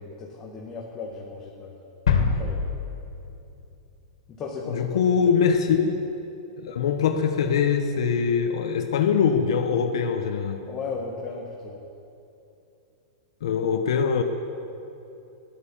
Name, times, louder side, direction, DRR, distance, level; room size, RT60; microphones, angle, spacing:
voice 1, 0.0-1.8 2.1-2.7 4.3-4.9 5.2-5.4 10.7-11.8, left 4 dB, 20° left, -3 dB, 1.8 m, -36 dB
sound 1, 2.1-3.9 4.2-4.3, left 5 dB, 90° left, 2.5 m, -26 dB
voice 2, 4.7-6.0 6.6-10.6 13.4-14.2, left 6 dB, 75° left, 4 dB, 1.2 m, -23 dB
16.0 x 12.5 x 7.3 m, 2.8 s
supercardioid pair, 155°, 3 cm